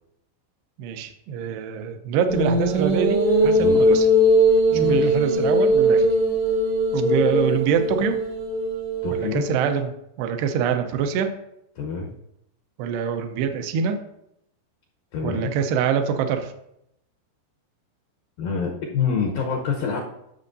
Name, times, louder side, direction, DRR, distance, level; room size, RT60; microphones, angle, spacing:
voice 1, 0.8-4.1 4.7-6.1 6.9-8.2 9.1-9.9 10.2-11.3 12.8-14.0 15.2-16.5, right 7 dB, 80° right, 7 dB, 2.6 m, -25 dB
sound 1, 2.3-9.7, equal, 60° right, 1.8 m, -20 dB
voice 2, 4.7-5.2 9.0-9.4 11.8-12.1 15.1-15.5 18.4-20.0, left 5 dB, 80° left, 0 dB, 2.0 m, -26 dB
13.5 x 6.2 x 2.6 m, 0.79 s
omnidirectional pair, 5.2 m